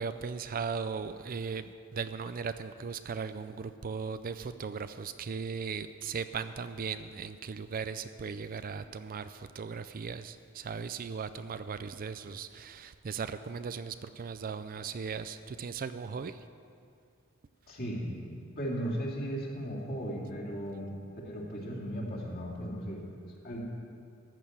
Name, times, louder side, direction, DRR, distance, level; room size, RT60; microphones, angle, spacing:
voice 1, 0.0-16.4, right 5 dB, 40° right, 11 dB, 0.4 m, -38 dB
voice 2, 17.7-18.2 18.6-21.0 21.2-23.1 23.4-23.6, equal, 45° left, -3 dB, 2.7 m, -36 dB
14.0 x 6.7 x 9.3 m, 2.5 s
head